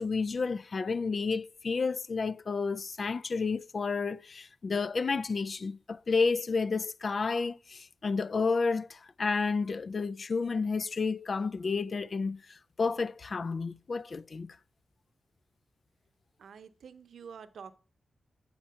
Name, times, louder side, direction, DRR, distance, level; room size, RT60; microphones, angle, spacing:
voice 1, 0.0-14.6, left 4 dB, 55° left, 0.3 m, -31 dB
voice 2, 16.4-17.7, right 6 dB, 80° right, 0.7 m, -48 dB
8.5 x 4.4 x 5.5 m
cardioid pair, 60°, 0 cm